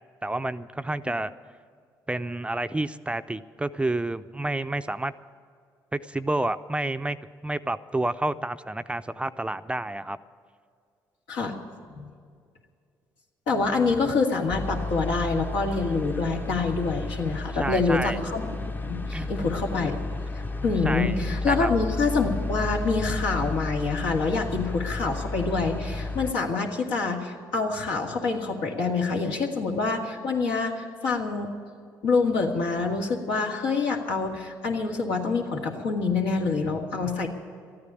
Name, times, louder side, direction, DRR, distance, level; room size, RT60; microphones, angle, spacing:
voice 1, 0.2-1.3 2.1-5.1 5.9-7.2 7.4-10.2 17.6-18.2 19.1-19.3 20.8-21.1 21.4-21.7, right 2 dB, 15° right, 11 dB, 0.5 m, -29 dB
voice 2, 13.5-18.6 18.8-20.0 20.6-31.5 32.0-37.3, left 4 dB, 80° left, 0 dB, 1.9 m, -26 dB
sound 1, 14.5-26.3, left 2 dB, 20° left, 0.7 m, -32 dB
13.5 x 9.7 x 9.7 m, 2.2 s
supercardioid pair, 60°, 9 cm